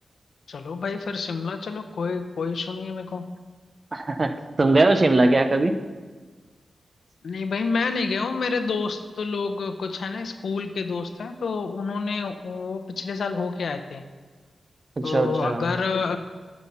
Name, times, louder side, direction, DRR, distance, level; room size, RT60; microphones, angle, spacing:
voice 1, 0.5-3.2 7.2-14.0 15.0-16.2, left 4 dB, 80° left, 8 dB, 0.7 m, -28 dB
voice 2, 3.9-5.8 15.0-15.7, right 2 dB, 35° right, 9 dB, 0.7 m, -21 dB
9.5 x 7.2 x 5.6 m, 1.4 s
wide cardioid pair, 85°, 0 cm